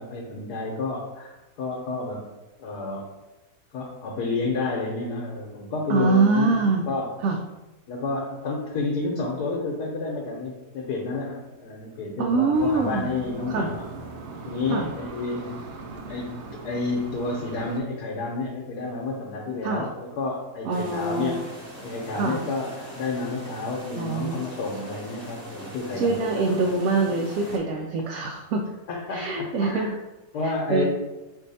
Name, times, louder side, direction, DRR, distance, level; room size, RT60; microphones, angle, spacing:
voice 1, 0.0-1.3 1.6-2.2 2.6-3.1 3.7-6.5 6.9-7.1 7.9-13.9 14.4-15.7 16.1-21.4 21.8-26.6 28.9-29.9 30.3-30.9, left 3 dB, 85° left, -1 dB, 1.3 m, -30 dB
voice 2, 5.9-6.8 7.2-7.4 12.2-13.1 13.5-13.7 14.7-14.9 19.6-19.8 20.6-21.4 22.1-22.4 24.0-24.4 26.0-28.6 29.1-29.9 30.4-30.8, right 3 dB, 70° right, 0 dB, 0.9 m, -24 dB
sound 1, 12.5-17.8, right 3 dB, 90° right, 1.2 m, -39 dB
sound 2, 20.7-27.6, right 1 dB, 10° right, 0.8 m, -41 dB
4.4 x 2.7 x 4.0 m, 1.1 s
omnidirectional pair, 1.6 m